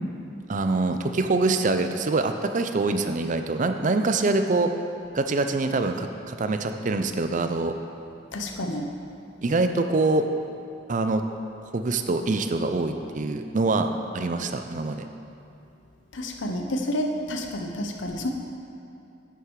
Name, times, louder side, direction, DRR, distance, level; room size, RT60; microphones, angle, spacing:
voice 1, 0.5-4.7 5.1-7.7 9.4-10.2 10.9-11.2 11.7-15.1, right 3 dB, 40° right, 7 dB, 0.5 m, -24 dB
voice 2, 8.3-8.9 16.1-18.3, left 1 dB, 75° left, 3 dB, 0.9 m, -29 dB
10.5 x 6.6 x 4.8 m, 2.6 s
head